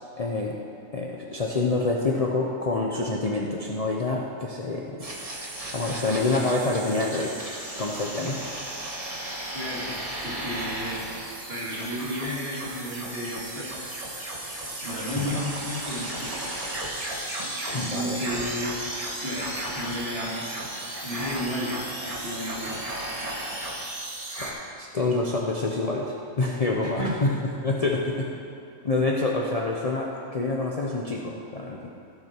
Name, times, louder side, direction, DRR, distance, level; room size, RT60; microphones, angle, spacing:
voice 1, 0.2-0.6 0.9-5.0 5.3-7.3 7.8-8.4 15.2-15.5 17.7-18.2 24.8-27.3 27.6-28.3 28.8-31.8, left 3 dB, 35° left, -2 dB, 0.7 m, -27 dB
sound 1, 5.0-24.5, right 1 dB, 30° right, 1.4 m, -34 dB
voice 2, 9.5-10.0 10.2-11.1 11.5-13.7 14.8-16.3 17.7-18.9 19.2-20.5 21.0-22.9 26.8-27.1, equal, 45° right, -6 dB, 2.7 m, -33 dB
15.5 x 6.2 x 4.4 m, 2.7 s
omnidirectional pair, 1.4 m